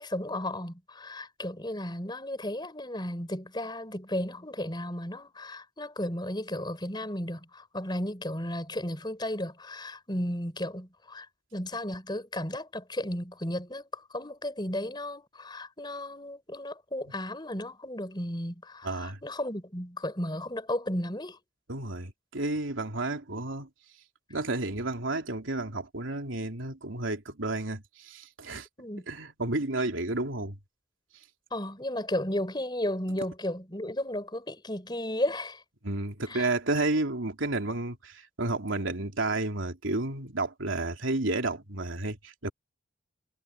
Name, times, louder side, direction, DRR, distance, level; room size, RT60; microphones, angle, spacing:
voice 1, 0.0-11.3 11.5-21.4 28.8-29.1 31.5-35.6 36.3-36.5, left 1 dB, 20° left, 5.3 m, -34 dB
voice 2, 18.8-19.2 21.7-23.7 24.3-28.7 29.1-30.6 35.8-42.5, right 2 dB, 85° right, 3.2 m, -31 dB
head